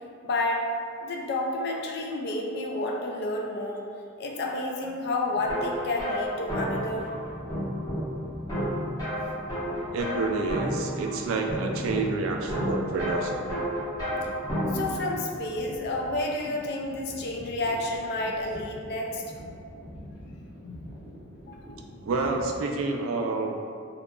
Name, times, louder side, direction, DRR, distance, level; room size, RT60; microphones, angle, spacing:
voice 1, 0.2-0.7 1.0-3.8 4.2-7.1 14.7-19.5 20.6-20.8 21.5-21.6, left 2 dB, 55° left, 0 dB, 0.3 m, -30 dB
sound 1, 5.3-15.2, equal, 20° left, 0.9 m, -32 dB
sound 2, 6.6-22.6, equal, 10° right, 0.6 m, -45 dB
voice 2, 9.9-13.5 22.0-23.7, right 3 dB, 75° right, 3 dB, 0.3 m, -29 dB
2.8 x 2.2 x 2.3 m, 2.3 s
head